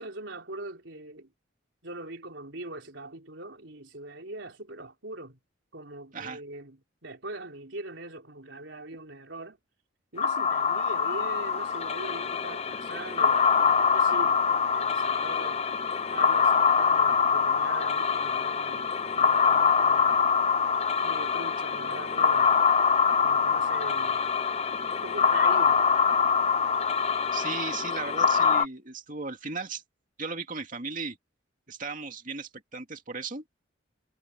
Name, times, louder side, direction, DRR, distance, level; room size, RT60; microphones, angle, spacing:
voice 1, 0.0-1.3 1.8-5.4 5.7-9.6 10.1-15.7 16.1-20.2 21.0-22.6 23.2-24.2 24.9-25.9, right 2 dB, 70° right, 4.1 m, -42 dB
sound 1, 10.2-28.7, left 6 dB, 35° left, 1.0 m, -24 dB
voice 2, 27.3-29.8 30.2-31.2 31.7-33.4, right 4 dB, 45° right, 2.5 m, -36 dB
head